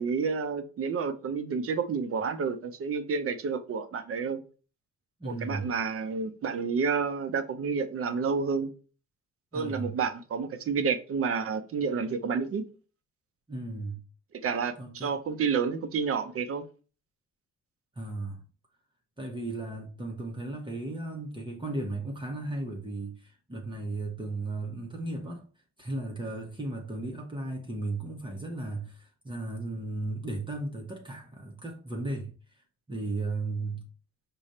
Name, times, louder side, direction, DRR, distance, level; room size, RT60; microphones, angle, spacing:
voice 1, 0.0-4.4 5.2-8.7 9.5-12.6 14.4-16.6, right 5 dB, 50° right, 0.7 m, -30 dB
voice 2, 5.2-5.7 9.5-9.9 13.5-14.0 14.8-15.1 18.0-18.4 19.2-25.4 25.8-32.3 32.9-33.8, right 2 dB, 15° right, 0.9 m, -35 dB
4.9 x 2.3 x 4.2 m
cardioid pair, 90°, 30 cm